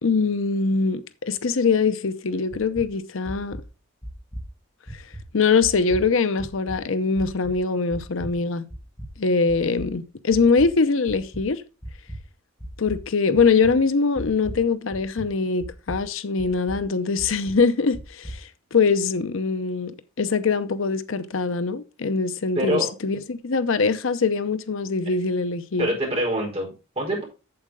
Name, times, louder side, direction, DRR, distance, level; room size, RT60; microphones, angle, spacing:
voice 1, 0.0-3.6 4.9-5.0 5.3-8.6 9.2-11.6 12.8-25.9, left 4 dB, 65° left, 0.7 m, -23 dB
sound 1, 2.5-2.9 3.2-3.6 4.0-4.5 4.9-5.2 5.6-6.1 6.4-6.8 7.2-7.6 7.9-8.3 8.7-9.1 9.5-9.9 10.3-10.7 11.1-11.4 11.8-12.2 12.6-13.0 13.4-13.8 14.2-14.7 14.9-15.3 15.6-16.0 16.4-16.8 17.2-17.6 17.9-18.4, equal, 10° left, 1.3 m, -36 dB
voice 2, 22.5-22.9 25.8-27.3, right 1 dB, 30° right, 4.5 m, -25 dB
8.7 x 7.4 x 3.6 m
head